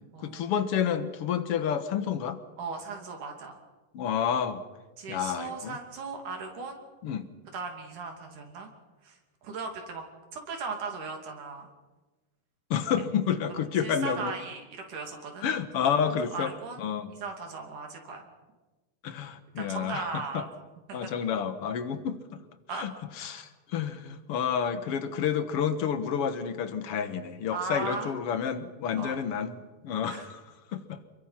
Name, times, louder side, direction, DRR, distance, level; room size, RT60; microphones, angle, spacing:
voice 1, 0.2-2.4 3.9-4.6 5.1-5.8 7.0-7.3 12.7-14.3 15.4-16.5 16.8-17.1 19.0-20.4 20.9-22.2 22.7-30.4 30.7-31.0, left 8 dB, 55° left, 10 dB, 2.0 m, -30 dB
voice 2, 2.6-3.6 5.0-6.9 7.5-8.7 9.0-10.0 10.3-11.7 13.8-15.5 16.3-16.9 17.2-18.3 19.6-20.5 20.9-21.1 22.7-22.9 23.2-23.5 27.5-28.1 29.0-29.2 30.1-30.3, right 4 dB, 75° right, 3 dB, 4.2 m, -37 dB
28.5 x 22.0 x 5.8 m, 1.2 s
omnidirectional pair, 3.6 m